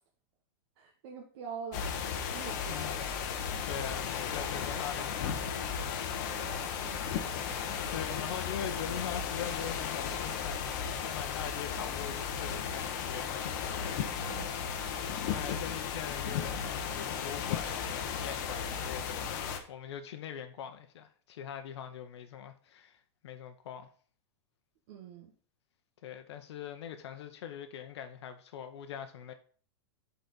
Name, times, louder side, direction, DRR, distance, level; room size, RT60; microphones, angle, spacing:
voice 1, 0.8-2.0 2.3-3.1 6.3-7.9 14.0-14.9 24.9-25.3, right 6 dB, 50° right, 1.0 m, -46 dB
sound 1, 1.7-19.6, left 7 dB, 45° left, 0.9 m, -35 dB
voice 2, 2.7-3.0 3.6-5.8 7.3-13.6 15.2-23.9 26.0-29.3, left 9 dB, 75° left, 0.8 m, -42 dB
8.1 x 4.1 x 4.0 m
supercardioid pair, 170°, 14 cm